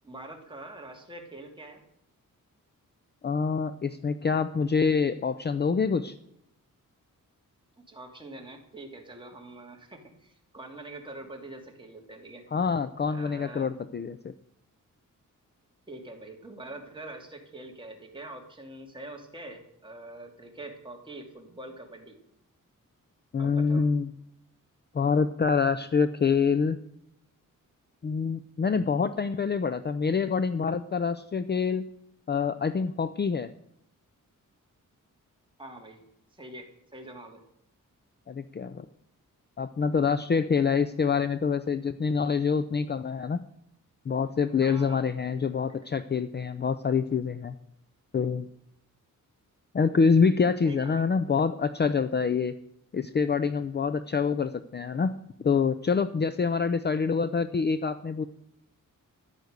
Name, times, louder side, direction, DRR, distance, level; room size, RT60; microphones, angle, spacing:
voice 1, 0.0-1.8 7.9-12.5 13.1-13.7 15.9-22.2 23.4-23.9 35.6-36.0 36.3-37.4 44.6-45.0 45.7-45.9 50.6-51.1, right 2 dB, 15° right, 1 dB, 2.7 m, -44 dB
voice 2, 3.2-6.1 12.5-14.2 23.3-24.1 24.9-26.8 28.0-31.8 32.3-33.5 38.3-38.9 39.6-43.4 44.1-47.5 48.1-48.5 49.7-52.5 52.9-55.2 55.4-58.2, left 5 dB, 30° left, 11 dB, 0.5 m, -26 dB
14.0 x 11.0 x 6.6 m, 0.77 s
wide cardioid pair, 165°, 33 cm